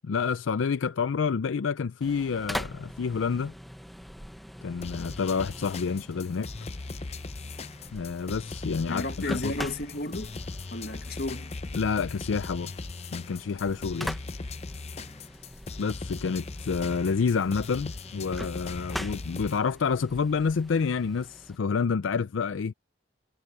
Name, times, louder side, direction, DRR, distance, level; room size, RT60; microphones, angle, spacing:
voice 1, 0.0-3.5 4.6-6.5 7.9-9.5 11.7-12.7 13.1-14.2 15.8-22.7, left 5 dB, 90° left, 0.4 m, -28 dB
sound 1, 2.0-21.6, equal, ahead, 0.8 m, -43 dB
sound 2, 4.8-19.6, left 3 dB, 35° left, 0.6 m, -39 dB
voice 2, 8.9-10.4 10.7-11.5, left 2 dB, 55° left, 1.8 m, -33 dB
head